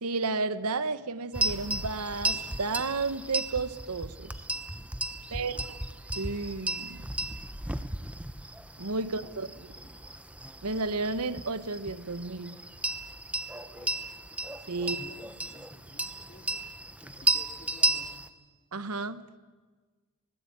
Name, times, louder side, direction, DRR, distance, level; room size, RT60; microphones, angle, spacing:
voice 1, 0.0-4.3 5.3-5.8 6.2-7.1 8.8-9.5 10.6-12.6 14.7-15.0 18.7-19.2, right 3 dB, 85° right, 13 dB, 1.2 m, -32 dB
sound 1, 1.3-18.3, right 2 dB, 5° right, 0.9 m, -34 dB
voice 2, 5.2-5.7 9.0-10.0 13.5-14.0 14.8-16.7 17.0-18.1, left 1 dB, 35° left, -3 dB, 3.0 m, -54 dB
25.5 x 20.0 x 8.8 m, 1.3 s
head